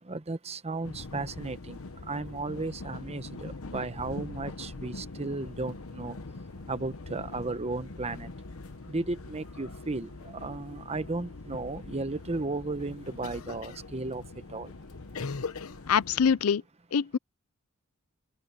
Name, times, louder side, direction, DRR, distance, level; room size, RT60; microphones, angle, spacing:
voice 1, 0.0-6.2 6.6-8.4 8.9-14.7, right 3 dB, 30° right, 1.0 m, -35 dB
sound 1, 0.8-16.3, left 3 dB, 70° left, 1.0 m, -42 dB
voice 2, 15.9-16.6 16.9-17.2, left 7 dB, 85° left, 0.5 m, -24 dB
head